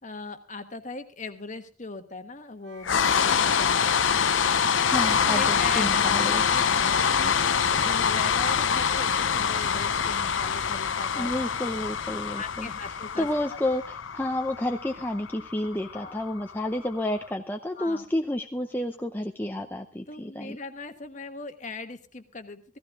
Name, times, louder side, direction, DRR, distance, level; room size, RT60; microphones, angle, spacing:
voice 1, 0.0-4.0 4.8-11.3 12.3-13.3 15.9-16.2 17.8-18.0 20.1-22.8, left 3 dB, 40° left, 8 dB, 1.3 m, -39 dB
Harmonica, 2.6-9.2, right 4 dB, 60° right, 2.2 m, -45 dB
sound 1, 2.8-17.0, left 7 dB, 80° left, 0.7 m, -25 dB
voice 2, 4.9-6.4 11.1-12.7 13.2-20.6, left 1 dB, 10° left, 4 dB, 0.6 m, -30 dB
16.0 x 14.5 x 3.6 m, 0.36 s
head